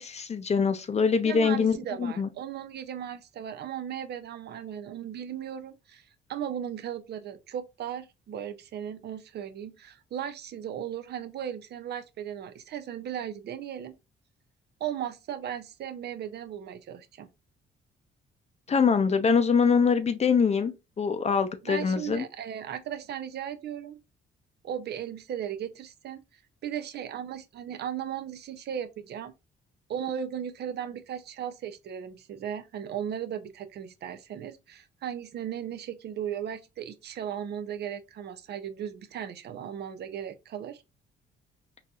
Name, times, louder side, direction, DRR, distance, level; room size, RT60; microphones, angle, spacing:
voice 1, 0.0-2.3 18.7-22.2, left 5 dB, 35° left, 0.5 m, -24 dB
voice 2, 1.2-6.0 6.3-13.9 14.8-17.3 21.6-24.0 24.6-26.2 26.6-29.3 29.9-40.8, right 9 dB, 55° right, 0.4 m, -36 dB
3.9 x 2.7 x 2.3 m
cardioid pair, 90°, 20 cm